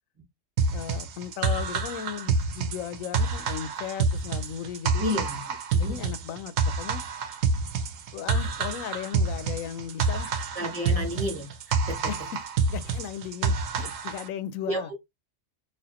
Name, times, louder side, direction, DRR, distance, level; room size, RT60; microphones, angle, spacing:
sound 1, 0.6-14.3, right 4 dB, 75° right, 1.0 m, -28 dB
voice 1, 0.7-5.2 5.8-7.0 8.1-11.1 12.1-12.2 12.6-15.0, left 9 dB, 90° left, 1.0 m, -36 dB
voice 2, 5.0-5.4 5.7-6.0 10.5-12.1 14.7-15.0, equal, 30° right, 0.9 m, -31 dB
4.2 x 2.5 x 2.9 m
omnidirectional pair, 1.4 m